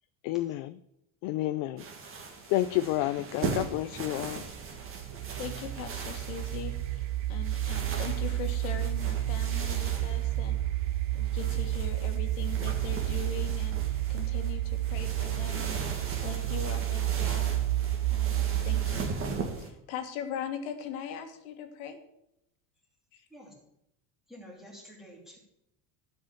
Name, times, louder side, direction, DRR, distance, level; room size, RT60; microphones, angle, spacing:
voice 1, 0.2-0.7 1.2-1.8 2.5-4.4, left 15 dB, 50° left, 13 dB, 0.5 m, -30 dB
sound 1, 1.8-19.7, right 4 dB, 30° right, 1.9 m, -40 dB
sound 2, 4.4-19.2, right 14 dB, 65° right, 0.5 m, -31 dB
voice 2, 5.4-10.6 11.1-17.6 18.1-19.1 19.6-22.0 23.1-23.3, left 8 dB, 80° left, 6 dB, 1.8 m, -41 dB
voice 3, 24.3-25.4, equal, ahead, -3 dB, 3.2 m, -49 dB
12.0 x 5.6 x 7.7 m, 0.79 s
cardioid pair, 155°, 42 cm